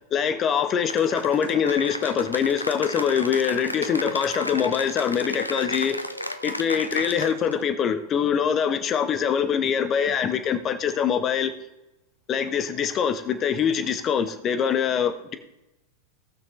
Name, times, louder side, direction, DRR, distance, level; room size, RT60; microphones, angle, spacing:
voice 1, 0.1-6.0 6.4-11.5 12.3-15.4, left 7 dB, 30° left, 0.9 m, -24 dB
Cheering / Applause, 0.9-7.6, left 1 dB, 85° left, 0.6 m, -33 dB
18.0 x 6.2 x 3.0 m
figure-of-eight pair, 90°, 0 cm